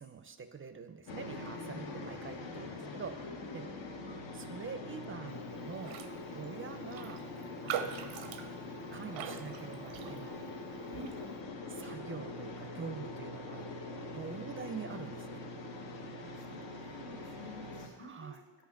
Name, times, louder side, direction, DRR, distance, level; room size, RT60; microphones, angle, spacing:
voice 1, 0.0-3.3 3.5-3.7 4.3-6.0 6.3-7.2 7.6-8.5 8.9-10.6 11.7-13.7 14.1-15.4 18.0-18.4, right 6 dB, 30° right, 10 dB, 0.4 m, -45 dB
sound 1, 1.1-17.9, left 2 dB, 70° left, 1.1 m, -43 dB
voice 2, 3.2-3.6 10.9-11.2 15.7-15.8 16.4-18.4, right 1 dB, 50° left, 1 dB, 1.9 m, -50 dB
Raindrop, 5.8-6.2 6.4-6.5 6.9-10.5 10.9-11.2, right 9 dB, 90° right, 0.7 m, -41 dB
5.8 x 5.5 x 6.3 m, 1.3 s
cardioid pair, 85°, 46 cm